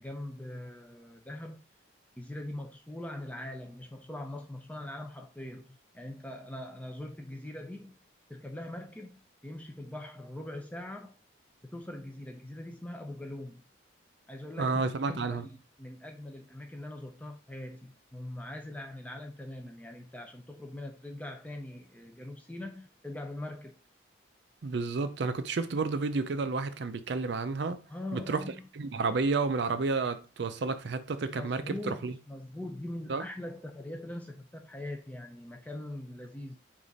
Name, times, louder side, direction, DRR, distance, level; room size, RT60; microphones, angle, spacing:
voice 1, 0.0-1.6 2.2-8.0 8.3-11.2 11.6-13.6 14.3-23.8 27.9-28.6 31.3-36.6, left 1 dB, 10° left, 0.5 m, -42 dB
voice 2, 14.6-15.4 24.6-27.8 28.1-32.1 33.1-33.2, right 4 dB, 60° right, 0.5 m, -31 dB
5.0 x 2.6 x 4.0 m
head